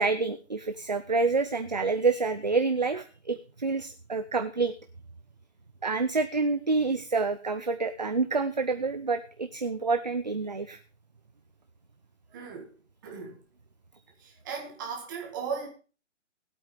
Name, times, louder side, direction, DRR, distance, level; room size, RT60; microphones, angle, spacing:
voice 1, 0.0-4.7 5.8-10.8, right 4 dB, 35° right, 0.5 m, -28 dB
voice 2, 12.3-12.7 13.0-13.4 14.2-15.7, right 5 dB, 15° right, 1.8 m, -37 dB
19.0 x 8.5 x 3.4 m
hypercardioid pair, 175°, 38 cm